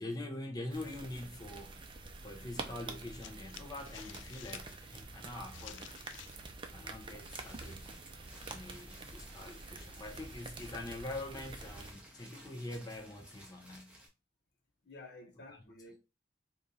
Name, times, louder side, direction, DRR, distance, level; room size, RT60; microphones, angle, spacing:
voice 1, 0.0-1.8 2.2-6.0 6.7-7.9 8.4-14.0, left 1 dB, 20° left, 0.6 m, -44 dB
sound 1, 0.7-11.9, right 3 dB, 25° right, 0.5 m, -47 dB
sound 2, 3.2-6.5 6.7-9.3, left 11 dB, 85° left, 0.3 m, -54 dB
sound 3, 7.2-14.1, equal, 5° right, 0.9 m, -56 dB
voice 2, 14.8-16.0, left 2 dB, 60° left, 0.8 m, -52 dB
3.5 x 2.4 x 3.9 m
head